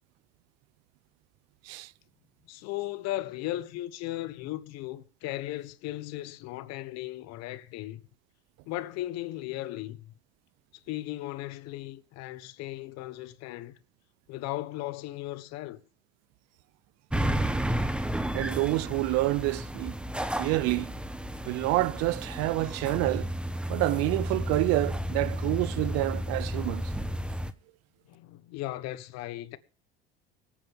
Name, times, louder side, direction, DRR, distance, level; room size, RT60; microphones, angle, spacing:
voice 1, 2.5-8.0 8.7-10.1 10.7-13.7 14.3-15.8 28.1-29.6, left 16 dB, 60° left, 1.4 m, -36 dB
sound 1, 17.1-27.5, right 1 dB, 5° right, 1.1 m, -32 dB
voice 2, 18.3-19.9 20.4-21.0 21.4-23.3 23.7-26.9, right 19 dB, 60° right, 0.6 m, -28 dB
24.5 x 9.0 x 3.6 m
hypercardioid pair, 85°, 30 cm